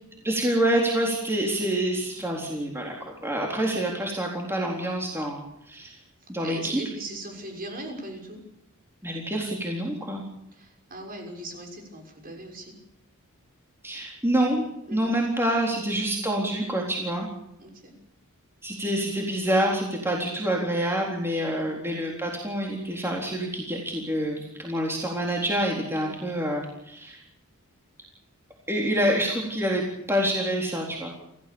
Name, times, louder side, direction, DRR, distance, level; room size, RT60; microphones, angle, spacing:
voice 1, 0.2-5.9 6.3-6.8 9.0-10.2 13.8-14.6 14.9-17.3 18.6-27.2 28.7-31.1, right 1 dB, 10° right, -1 dB, 3.8 m, -27 dB
voice 2, 6.2-8.4 10.5-12.8 14.9-15.2 17.6-18.0 21.5-21.9 26.0-26.2, right 1 dB, 40° right, 2 dB, 6.1 m, -40 dB
28.0 x 16.0 x 7.1 m, 0.80 s
head